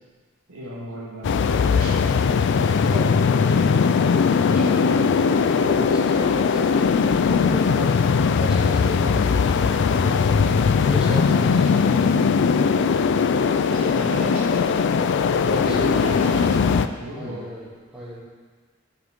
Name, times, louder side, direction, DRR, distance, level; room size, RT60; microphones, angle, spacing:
voice 1, 0.5-2.2 11.1-12.1 13.7-14.7 15.6-16.7 17.0-17.4, equal, 75° right, -5 dB, 1.9 m, -34 dB
sound 1, 1.2-16.9, left 5 dB, 55° left, 0.3 m, -19 dB
voice 2, 2.7-3.9 4.5-7.9 8.3-9.9 10.3-11.7 15.4-15.9 17.2-17.7 17.9-18.2, equal, 5° right, -10 dB, 2.6 m, -35 dB
11.0 x 5.9 x 3.7 m, 1.4 s
head